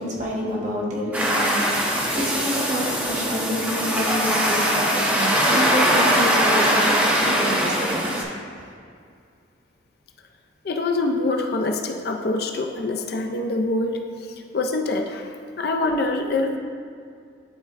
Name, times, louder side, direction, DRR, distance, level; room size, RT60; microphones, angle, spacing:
voice 1, 0.0-8.6, equal, 40° right, -4 dB, 1.2 m, -28 dB
sound 1, 1.1-8.2, equal, 10° right, 0.6 m, -21 dB
voice 2, 10.6-16.6, left 2 dB, 55° left, 4 dB, 0.4 m, -25 dB
10.5 x 4.1 x 2.5 m, 2.2 s
head